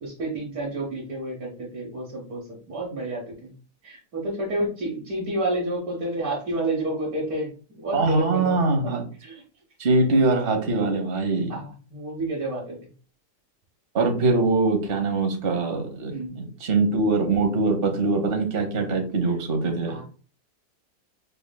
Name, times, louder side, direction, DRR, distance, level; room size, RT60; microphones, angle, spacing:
voice 1, 0.0-3.5 3.8-7.5 7.7-8.9 9.2-9.4 11.5-12.8 16.1-16.3 19.9-20.0, right 1 dB, 65° right, -4 dB, 1.5 m, -30 dB
voice 2, 7.9-9.0 9.8-11.6 13.9-20.0, right 3 dB, 45° right, 3 dB, 0.9 m, -23 dB
5.0 x 3.1 x 2.2 m, 0.39 s
omnidirectional pair, 1.7 m